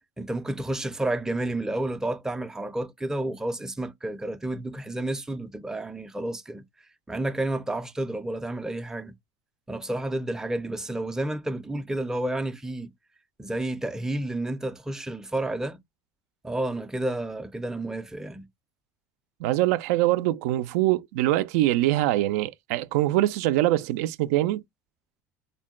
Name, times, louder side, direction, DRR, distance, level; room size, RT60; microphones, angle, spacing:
voice 1, 0.2-6.6 7.1-9.1 9.7-12.9 13.4-15.8 16.4-18.5, right 1 dB, 5° right, 0.4 m, -30 dB
voice 2, 19.4-24.6, right 15 dB, 80° right, 0.3 m, -23 dB
3.7 x 2.2 x 3.6 m
supercardioid pair, 100°, 8 cm